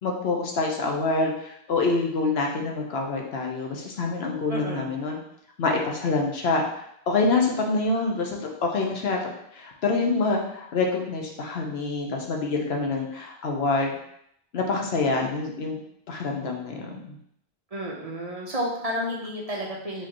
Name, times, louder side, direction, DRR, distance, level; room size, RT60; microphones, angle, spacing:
voice 1, 0.0-5.2 5.6-14.0 14.5-15.8 16.1-17.2, left 3 dB, 70° left, 1 dB, 1.0 m, -26 dB
voice 2, 4.5-5.0 17.7-20.1, equal, 40° right, -3 dB, 0.8 m, -31 dB
4.9 x 3.7 x 2.9 m, 0.74 s
omnidirectional pair, 1.1 m